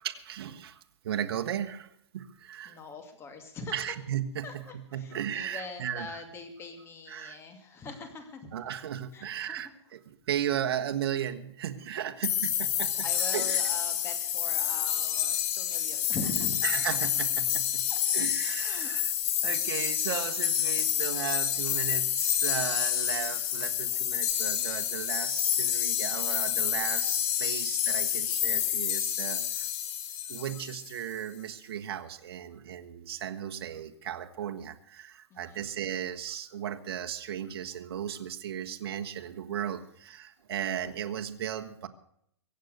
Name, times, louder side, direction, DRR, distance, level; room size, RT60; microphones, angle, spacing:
voice 1, 0.0-2.8 3.7-4.6 4.9-6.2 7.1-7.4 8.5-13.6 16.6-17.8 18.1-19.1 19.4-29.7 30.3-41.9, right 10 dB, 60° right, 5 dB, 1.4 m, -36 dB
voice 2, 2.7-3.7 4.4-8.5 9.1-9.7 13.0-16.8 17.9-18.0 18.6-19.0 35.3-35.6, left 3 dB, 15° left, 7 dB, 2.5 m, -42 dB
sound 1, 12.2-30.9, left 10 dB, 35° left, 2.2 m, -29 dB
23.5 x 8.1 x 6.6 m, 0.71 s
hypercardioid pair, 155°, 15 cm